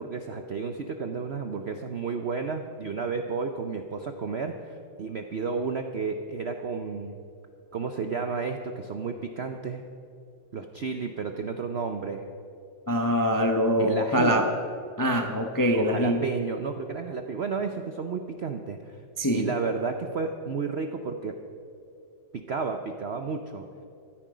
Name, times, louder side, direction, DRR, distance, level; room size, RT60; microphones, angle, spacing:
voice 1, 0.0-7.2 7.7-9.8 10.5-12.3 13.8-14.4 15.7-19.0 19.3-21.4 22.3-23.6, right 5 dB, 65° right, 6 dB, 0.6 m, -32 dB
voice 2, 12.9-14.5 15.0-16.2 19.2-19.5, equal, 25° left, 4 dB, 0.4 m, -24 dB
15.0 x 13.0 x 5.0 m, 2.6 s
omnidirectional pair, 2.0 m